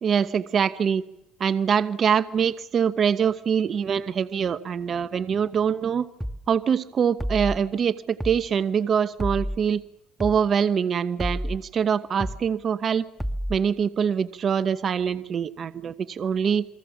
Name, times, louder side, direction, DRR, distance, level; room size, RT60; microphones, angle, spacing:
voice 1, 0.0-1.0 1.4-6.1 6.5-9.8 10.2-13.0 13.5-16.7, right 7 dB, 50° right, 12 dB, 1.0 m, -24 dB
sound 1, 6.2-6.4 7.2-7.6 8.2-8.4 9.2-9.6 10.2-10.4 11.2-11.6 12.2-12.4 13.2-13.6, equal, 5° right, 1.6 m, -29 dB
29.0 x 22.5 x 7.3 m, 0.83 s
supercardioid pair, 80°, 0 cm